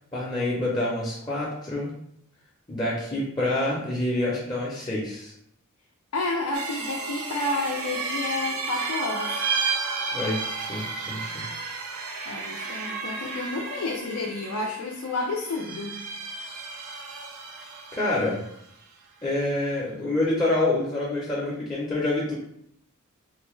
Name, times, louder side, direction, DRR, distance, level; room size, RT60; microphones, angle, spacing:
voice 1, 0.1-1.9 2.7-5.3 10.1-11.3 17.9-18.4 19.2-22.3, left 2 dB, 20° left, -6 dB, 0.6 m, -27 dB
voice 2, 6.1-9.4 12.3-16.0, left 2 dB, 90° left, 0 dB, 0.4 m, -30 dB
sound 1, 6.5-18.6, right 4 dB, 90° right, 0.5 m, -33 dB
3.8 x 2.2 x 3.1 m, 0.74 s
head